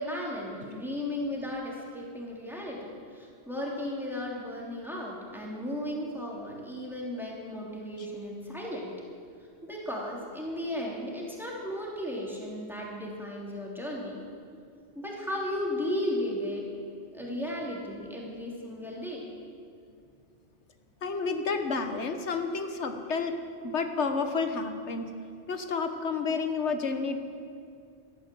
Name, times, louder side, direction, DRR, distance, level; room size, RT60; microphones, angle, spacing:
voice 1, 0.0-8.9 9.6-14.2 14.9-16.6 17.1-19.2, left 1 dB, ahead, -4 dB, 3.2 m, -35 dB
voice 2, 21.0-23.3 23.6-25.1 25.5-27.2, left 4 dB, 85° left, 7 dB, 1.5 m, -30 dB
14.5 x 12.5 x 7.8 m, 2.4 s
omnidirectional pair, 1.1 m